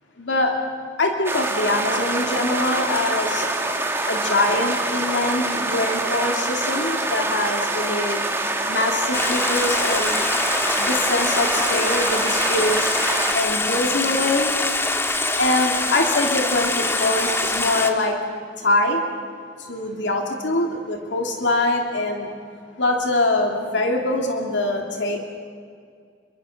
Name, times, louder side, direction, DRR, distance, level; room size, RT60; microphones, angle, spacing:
voice 1, 0.2-0.6 1.0-3.5 4.1-8.2 8.7-10.1 10.8-13.0 13.3-14.6 15.4-18.2 18.6-19.0 19.6-22.3 22.8-25.4, left 2 dB, 85° left, 2 dB, 2.6 m, -23 dB
sound 1, 1.2-13.3, right 2 dB, 15° right, 2.1 m, -25 dB
Stream, 9.1-17.9, left 2 dB, 15° left, 1.4 m, -24 dB
28.5 x 23.0 x 6.5 m, 2.1 s
head